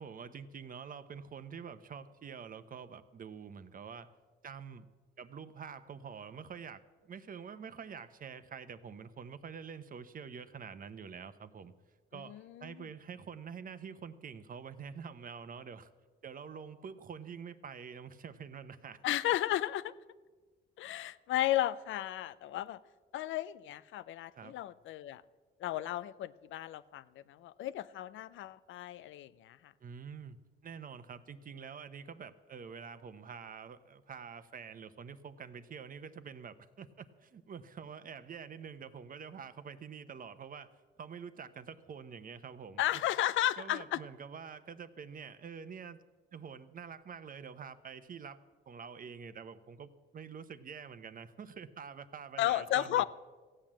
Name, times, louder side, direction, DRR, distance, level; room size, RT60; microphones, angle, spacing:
voice 1, 0.0-4.1 4.4-4.9 5.2-11.7 12.1-15.9 16.2-19.0 24.3-24.5 29.8-30.4 30.6-40.7 41.0-43.0 43.6-46.0 46.3-48.4 48.7-53.0, right 6 dB, 45° right, 12 dB, 0.9 m, -47 dB
voice 2, 12.3-12.8 19.0-19.9 20.8-22.8 23.1-25.2 25.6-29.7 42.8-44.0 52.4-53.0, left 13 dB, 75° left, 16 dB, 0.6 m, -34 dB
15.5 x 8.9 x 7.4 m, 1.3 s
cardioid pair, 90°, 20 cm